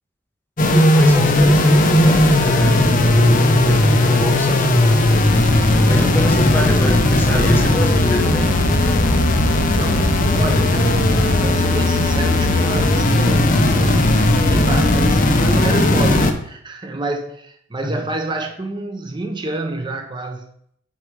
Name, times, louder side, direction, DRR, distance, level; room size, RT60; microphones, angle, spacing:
sound 1, 0.6-16.3, left 1 dB, 45° left, 0.8 m, -16 dB
voice 1, 0.7-5.1 5.8-8.5 13.2-13.5 17.8-18.1, equal, 10° left, 3 dB, 0.9 m, -24 dB
voice 2, 9.6-20.4, right 2 dB, 25° right, 4 dB, 0.7 m, -28 dB
8.6 x 5.0 x 4.7 m, 0.69 s
head